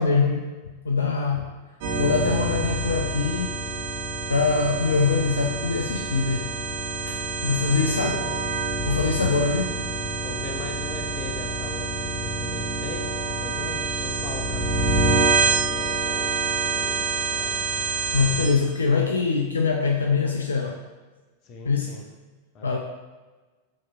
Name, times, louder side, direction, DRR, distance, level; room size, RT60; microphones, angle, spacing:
voice 1, 0.0-1.5 2.0-3.7 4.3-6.5 7.1-8.3 8.8-9.8 18.1-20.8 21.6-22.0 22.6-22.8, left 4 dB, 70° left, 2 dB, 0.3 m, -23 dB
sound 1, 1.8-18.5, right 3 dB, 50° right, 1.1 m, -27 dB
voice 2, 7.8-8.4 9.4-9.5 10.0-17.9 21.4-22.0 22.5-22.8, left 3 dB, 35° left, 2 dB, 0.7 m, -40 dB
7.1 x 2.9 x 2.3 m, 1.2 s
figure-of-eight pair, 90°, 0 cm